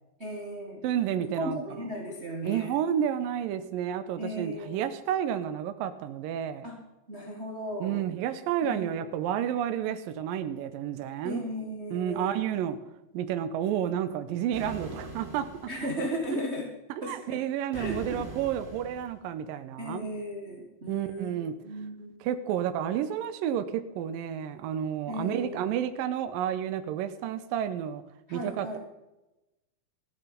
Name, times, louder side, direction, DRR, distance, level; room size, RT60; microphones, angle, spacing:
voice 1, 0.2-0.8 1.2-2.7 4.2-4.8 6.6-6.8 7.1-8.0 8.7-9.1 11.2-12.4 15.7-16.7 17.0-17.4 17.7-18.2 19.8-21.3 21.6-22.1 25.1-25.7 28.3-28.8, equal, 35° right, -1 dB, 1.0 m, -36 dB
voice 2, 0.8-1.6 2.4-6.7 7.8-11.4 11.9-12.8 13.1-15.5 16.3-16.4 17.1-20.1 20.9-21.5 22.2-28.0 28.3-28.8, right 10 dB, 75° right, 9 dB, 2.4 m, -30 dB
sound 1, 14.5-15.9 17.7-19.2, right 2 dB, 15° right, 2.1 m, -41 dB
15.0 x 9.2 x 5.8 m, 0.98 s
omnidirectional pair, 4.4 m